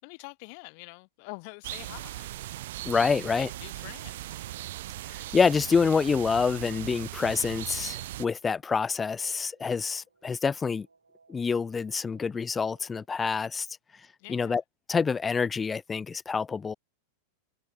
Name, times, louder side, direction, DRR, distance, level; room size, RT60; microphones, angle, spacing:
voice 1, 0.0-2.6 3.1-4.5 14.2-14.6, left 36 dB, 45° left, 7.6 m, -46 dB
sound 1, 1.6-8.2, right 15 dB, 55° right, 1.7 m, -39 dB
sound 2, 2.5-13.1, right 4 dB, 80° right, 6.5 m, -65 dB
voice 2, 2.8-3.5 5.1-10.9 11.3-13.7 14.3-14.6 14.9-16.7, left 5 dB, 15° left, 0.3 m, -27 dB
figure-of-eight pair, 90°, 0 cm